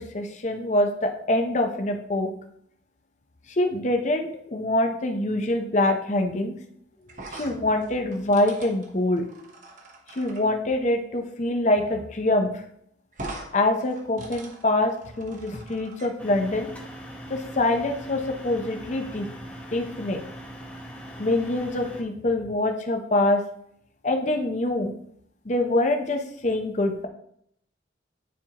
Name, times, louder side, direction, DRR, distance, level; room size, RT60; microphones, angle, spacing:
voice 1, 0.0-2.3 3.5-6.5 7.3-9.3 10.2-12.6 13.5-16.7 17.3-19.3 19.7-20.3 21.2-23.4 24.0-24.9 25.5-27.1, left 1 dB, 40° left, 5 dB, 0.7 m, -25 dB
sound 1, 7.1-10.4 11.9-12.0 12.3-12.4 13.1-13.5 13.8-16.1, right 2 dB, 45° right, 1.0 m, -42 dB
sound 2, 16.2-22.0, equal, 5° left, 0.8 m, -41 dB
9.3 x 4.4 x 2.9 m, 0.70 s
head